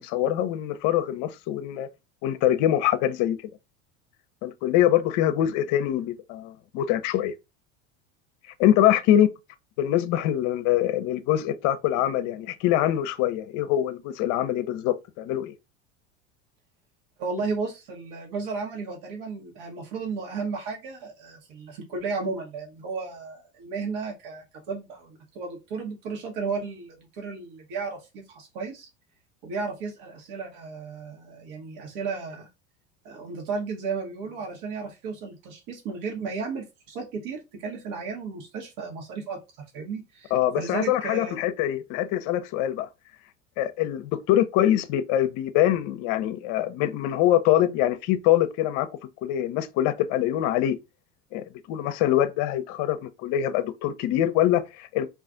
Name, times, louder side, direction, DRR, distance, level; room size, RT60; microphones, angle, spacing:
voice 1, 0.0-1.9 2.2-3.4 4.4-7.3 8.6-9.3 9.8-15.5 40.3-42.9 43.6-48.9 49.2-50.8 51.3-55.1, left 12 dB, 55° left, 0.6 m, -24 dB
voice 2, 17.2-28.9 29.4-32.5 33.0-39.4 39.7-41.4, right 4 dB, 60° right, 1.1 m, -34 dB
2.4 x 2.4 x 3.7 m
hypercardioid pair, 85°, 36 cm